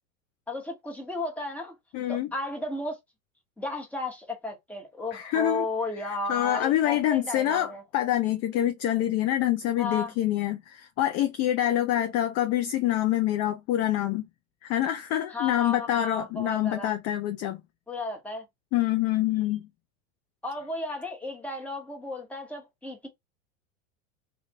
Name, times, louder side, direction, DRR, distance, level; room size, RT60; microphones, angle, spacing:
voice 1, 0.5-1.7 2.1-3.0 3.6-7.8 9.8-10.1 15.3-16.9 17.9-18.4 20.4-23.1, left 2 dB, 5° left, 1.1 m, -34 dB
voice 2, 1.9-2.3 5.1-5.7 6.0-14.3 14.6-17.6 18.7-19.7, left 13 dB, 40° left, 0.4 m, -26 dB
2.5 x 2.4 x 2.8 m
hypercardioid pair, 100°, 40 cm